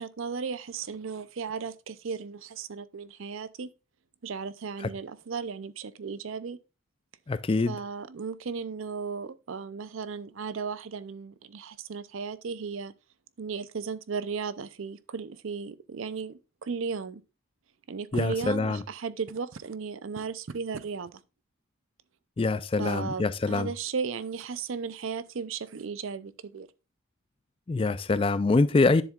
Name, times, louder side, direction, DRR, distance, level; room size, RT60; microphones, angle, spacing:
voice 1, 0.0-3.7 4.2-6.6 7.7-12.9 13.4-17.2 17.9-21.2 22.8-26.7, right 5 dB, 75° right, 0.5 m, -35 dB
voice 2, 7.3-7.8 18.1-18.8 22.4-23.7 27.7-29.0, left 3 dB, 25° left, 0.3 m, -24 dB
10.0 x 7.2 x 2.4 m
head